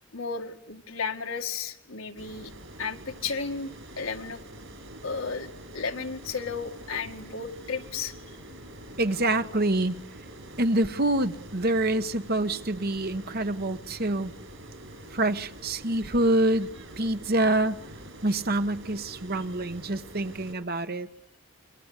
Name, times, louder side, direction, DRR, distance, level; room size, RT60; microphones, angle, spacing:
voice 1, 0.1-2.5 2.8-3.7 4.0-4.4 5.0-5.5 5.7-8.1, left 5 dB, 85° left, 2.1 m, -33 dB
sound 1, 2.2-20.5, right 1 dB, 70° right, 6.9 m, -45 dB
voice 2, 9.0-9.9 10.6-14.3 15.1-16.7 17.0-17.8 18.2-21.1, right 1 dB, 50° right, 1.2 m, -26 dB
28.5 x 24.5 x 8.3 m
head